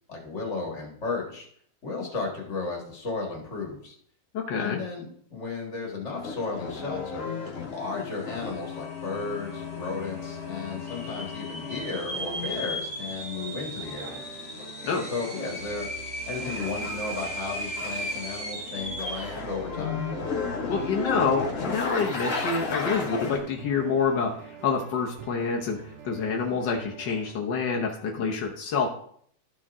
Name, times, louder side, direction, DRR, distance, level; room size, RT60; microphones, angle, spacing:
voice 1, 0.1-1.5 1.8-4.0 4.5-7.3 7.7-14.3 15.1-15.9 16.3-20.0, left 4 dB, 25° left, -1 dB, 1.9 m, -34 dB
voice 2, 4.3-4.8 14.8-15.1 20.7-28.9, left 5 dB, 80° left, 0 dB, 0.9 m, -27 dB
sound 1, 6.1-12.8 13.7-15.8 16.3-18.3 18.6-23.4, left 5 dB, 45° left, 1.0 m, -35 dB
sound 2, 8.5-8.6 8.8-9.3 9.8-9.9 10.7-19.4, equal, 5° right, 0.8 m, -36 dB
sound 3, 9.4-27.3, right 7 dB, 65° right, 1.7 m, -46 dB
13.0 x 4.5 x 3.6 m, 0.62 s
omnidirectional pair, 3.4 m